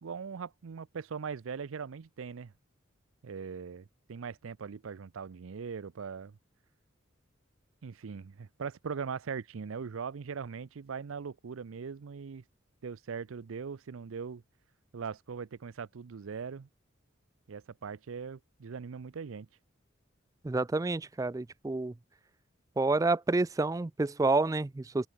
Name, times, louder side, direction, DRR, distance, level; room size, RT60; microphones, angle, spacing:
voice 1, 0.0-2.5 3.2-6.4 7.8-12.4 12.8-14.4 14.9-16.7 17.5-19.5, right 6 dB, 80° right, 0.5 m, -40 dB
voice 2, 20.4-21.9 22.8-25.1, right 3 dB, 15° right, 0.3 m, -29 dB
open air
head